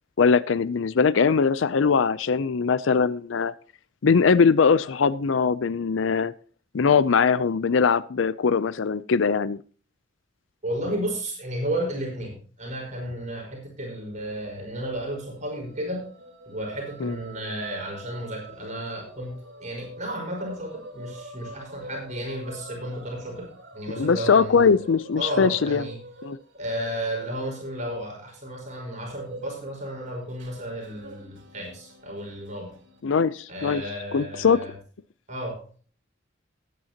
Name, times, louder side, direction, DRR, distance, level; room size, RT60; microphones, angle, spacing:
voice 1, 0.2-3.5 4.0-6.3 6.7-9.6 17.0-17.2 24.0-25.9 26.2-26.4 33.0-33.8 34.1-34.6, left 5 dB, 75° left, 17 dB, 0.5 m, -21 dB
voice 2, 10.6-16.1 16.5-19.3 19.6-24.7 25.2-26.0 26.6-32.7 33.5-34.7 35.3-35.6, right 1 dB, 40° right, -1 dB, 4.7 m, -33 dB
sound 1, 14.8-33.0, right 1 dB, 70° right, 3.5 m, -45 dB
18.0 x 9.3 x 2.9 m, 0.42 s
head